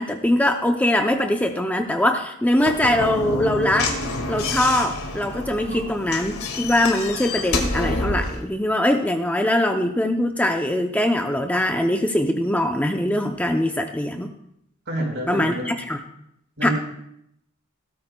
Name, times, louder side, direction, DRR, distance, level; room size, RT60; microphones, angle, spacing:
voice 1, 0.0-3.9 4.3-14.3 15.3-16.0 16.6-16.7, left 1 dB, 5° left, 4 dB, 0.5 m, -22 dB
Slam / Knock, 2.6-8.4, left 2 dB, 80° left, 1.9 m, -28 dB
voice 2, 14.9-15.7 16.6-16.7, equal, 60° right, 0 dB, 4.1 m, -28 dB
17.5 x 13.0 x 2.2 m, 0.77 s
head